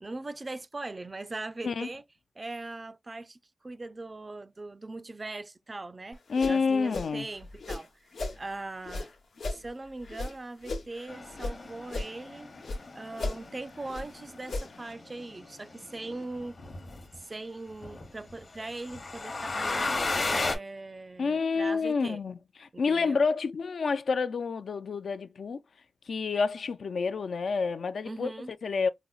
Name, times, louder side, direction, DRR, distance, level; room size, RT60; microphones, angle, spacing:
voice 1, 0.0-2.0 2.4-3.4 3.6-6.2 6.5-8.1 8.4-9.1 9.5-12.5 12.9-16.6 17.2-20.0 20.2-22.2 22.7-23.2 28.1-28.5, right 2 dB, 30° right, 0.3 m, -40 dB
sound 1, 6.1-8.4 8.8-11.6 11.8-12.8 13.1-14.9, left 2 dB, 90° left, 1.0 m, -37 dB
voice 2, 6.3-7.3 21.2-25.6 26.1-28.3 28.6-28.9, left 5 dB, 70° left, 0.3 m, -28 dB
sound 2, 11.1-17.2 17.8-20.5, left 3 dB, 50° left, 0.8 m, -35 dB
4.9 x 2.0 x 2.3 m
wide cardioid pair, 120°, 0 cm